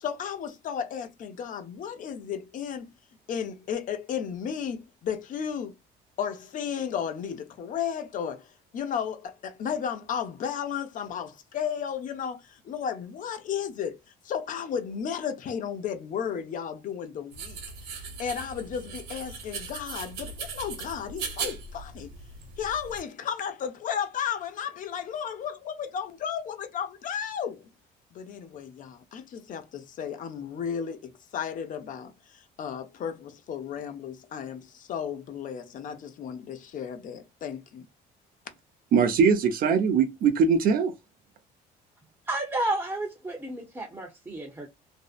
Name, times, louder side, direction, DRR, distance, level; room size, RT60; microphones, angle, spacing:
voice 1, 0.0-2.9 3.3-5.7 6.2-8.5 8.7-14.0 14.2-17.6 17.9-22.1 22.6-27.7 28.1-37.8, left 8 dB, 50° left, 0.5 m, -34 dB
sound 1, 17.3-23.0, right 5 dB, 75° right, 1.0 m, -38 dB
voice 2, 38.9-40.9, right 6 dB, 60° right, 0.5 m, -21 dB
voice 3, 42.3-44.7, right 2 dB, 15° right, 0.7 m, -31 dB
2.6 x 2.0 x 2.4 m
cardioid pair, 110°, 17 cm